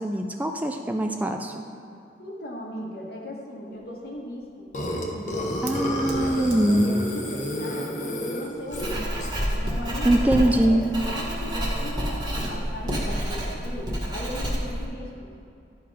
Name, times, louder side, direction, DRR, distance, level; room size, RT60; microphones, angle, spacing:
voice 1, 0.0-1.7 5.6-7.0 10.0-10.8, right 1 dB, 10° right, 4 dB, 0.4 m, -22 dB
voice 2, 2.2-4.7 5.0-5.6 6.1-9.2 9.5-15.3, equal, 60° left, -2 dB, 1.7 m, -37 dB
Fire, 3.7-9.9, right 3 dB, 85° right, 1.1 m, -46 dB
Burping eructation, 4.7-9.5, left 1 dB, 45° left, 1.3 m, -30 dB
Writing, 8.7-14.8, equal, 25° right, 1.6 m, -28 dB
11.5 x 5.6 x 5.0 m, 2.5 s
head